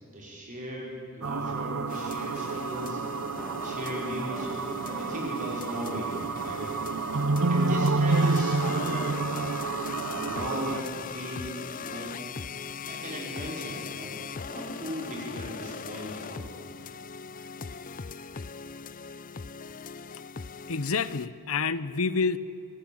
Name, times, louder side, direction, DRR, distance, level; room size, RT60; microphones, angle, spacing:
voice 1, 0.1-3.0 3.6-4.5 4.8-6.7 7.5-9.5 10.2-12.2 12.8-14.1 14.4-16.5, equal, 35° right, -2 dB, 5.1 m, -37 dB
sound 1, 1.2-10.8, right 3 dB, 65° right, 0.7 m, -29 dB
sound 2, 1.9-21.3, left 5 dB, 40° left, 0.5 m, -40 dB
sound 3, 3.3-11.8, right 1 dB, ahead, 1.4 m, -48 dB
voice 2, 20.7-22.4, left 4 dB, 70° left, 15 dB, 0.8 m, -28 dB
26.5 x 19.0 x 8.7 m, 2.7 s
head